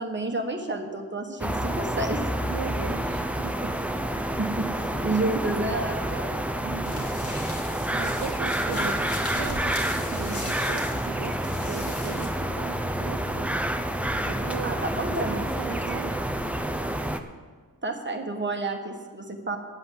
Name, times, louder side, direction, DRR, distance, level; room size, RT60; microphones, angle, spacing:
voice 1, 0.0-2.3 3.6-3.7 4.4-4.7 5.0-6.4 8.7-8.9 14.6-15.4 17.8-19.6, right 2 dB, 30° right, 4 dB, 1.3 m, -30 dB
sound 1, 1.4-17.2, right 1 dB, 5° right, 0.6 m, -28 dB
voice 2, 2.5-3.6 6.6-7.1 7.9-9.0 9.3-13.5 14.2-14.8 15.1-16.2, right 7 dB, 80° right, 7 dB, 0.6 m, -38 dB
sound 2, 6.8-12.3, left 2 dB, 75° left, 2.6 m, -39 dB
9.7 x 7.7 x 7.6 m, 1.5 s
wide cardioid pair, 80°, 36 cm